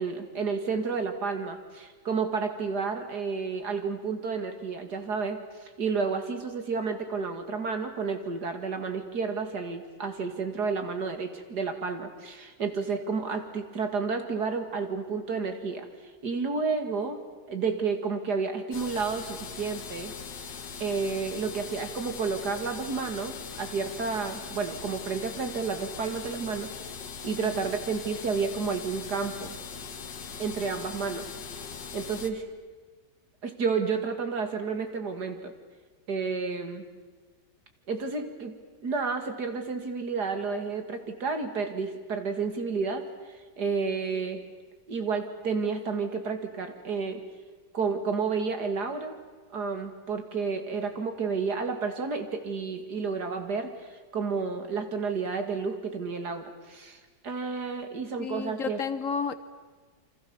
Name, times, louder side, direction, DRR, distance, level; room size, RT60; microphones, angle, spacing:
voice 1, 0.0-15.9 16.2-17.2 17.5-20.1 20.4-26.9 27.2-29.6 30.4-31.3 31.9-32.5 33.4-35.5 36.1-36.8 37.9-38.6 38.8-43.0 43.6-44.4 44.9-47.2 47.7-49.2 49.5-58.8, right 5 dB, 65° right, 6 dB, 2.8 m, -31 dB
sound 1, 18.7-32.3, left 6 dB, 85° left, 2.2 m, -40 dB
voice 2, 27.4-27.7 58.2-59.3, left 6 dB, 55° left, 12 dB, 1.3 m, -32 dB
28.0 x 25.5 x 7.1 m, 1.4 s
omnidirectional pair, 1.9 m